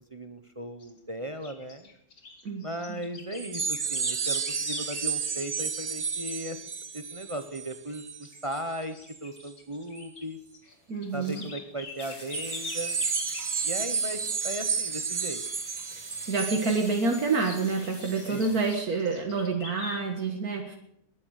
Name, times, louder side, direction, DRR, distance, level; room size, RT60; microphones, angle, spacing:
voice 1, 0.1-1.9 2.6-6.6 6.9-9.0 9.2-10.4 11.1-13.0 13.6-15.4 18.3-18.6, right 1 dB, 25° right, 7 dB, 1.0 m, -37 dB
sound 1, 0.8-1.0 1.4-5.1 7.7-8.0 8.2-8.4 8.8-10.3 10.5-13.5 16.5-16.9 17.4-20.0, left 3 dB, 75° left, 2.5 m, -43 dB
voice 2, 2.4-3.0 10.9-11.4 16.3-20.8, right 4 dB, 75° right, 2 dB, 2.1 m, -28 dB
sound 2, 3.4-8.8 9.1-9.4 10.0-10.1 12.3-17.6 18.0-18.2, right 5 dB, 60° right, 1.8 m, -32 dB
sound 3, 10.6-18.8, equal, 15° left, 5.5 m, -48 dB
20.0 x 10.0 x 6.5 m, 0.73 s
omnidirectional pair, 1.6 m